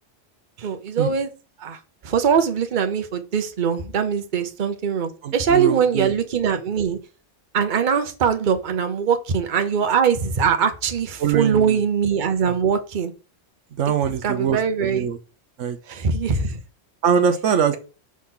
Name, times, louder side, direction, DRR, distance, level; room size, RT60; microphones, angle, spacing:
voice 1, 0.6-1.3 1.6-7.0 7.5-13.1 14.2-15.1 15.9-16.6, right 6 dB, 45° right, 1.0 m, -22 dB
voice 2, 5.2-6.1 11.2-11.8 13.8-15.2 15.6-15.8 17.0-17.8, right 7 dB, 75° right, 1.1 m, -22 dB
6.2 x 4.1 x 3.8 m
omnidirectional pair, 1.3 m